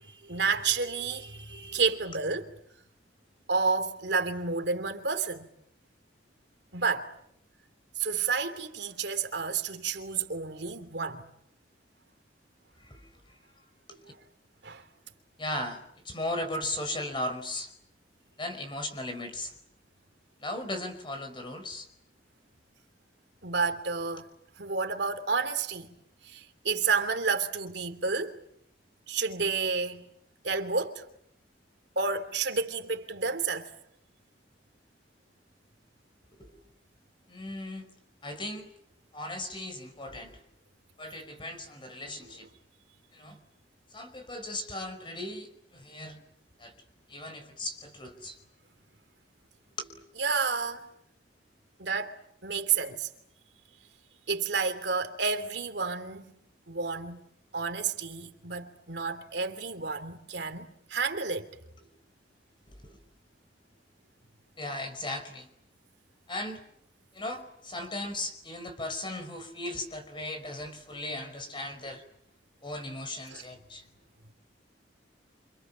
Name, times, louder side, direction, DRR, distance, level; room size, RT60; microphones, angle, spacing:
voice 1, 0.0-2.5 3.5-5.5 6.7-7.1 8.0-11.3 14.6-14.8 23.4-24.3 24.6-25.9 26.2-28.4 29.1-30.0 30.4-31.0 31.9-33.7 42.2-42.4 50.2-50.9 51.8-52.2 52.4-53.1 54.3-56.2 56.7-57.2 57.5-61.5 73.3-73.5, right 5 dB, 65° right, 3.1 m, -30 dB
voice 2, 15.4-15.8 16.1-17.7 18.4-19.5 20.4-21.9 36.4-36.5 37.3-37.9 38.2-38.7 39.1-40.4 41.0-42.5 43.1-43.4 43.9-46.2 46.6-46.7 47.1-48.4 49.8-49.9 62.8-63.0 64.6-65.5 66.3-66.6 67.1-72.0 72.6-73.8, left 1 dB, 25° left, 5.1 m, -37 dB
29.0 x 27.5 x 7.5 m
head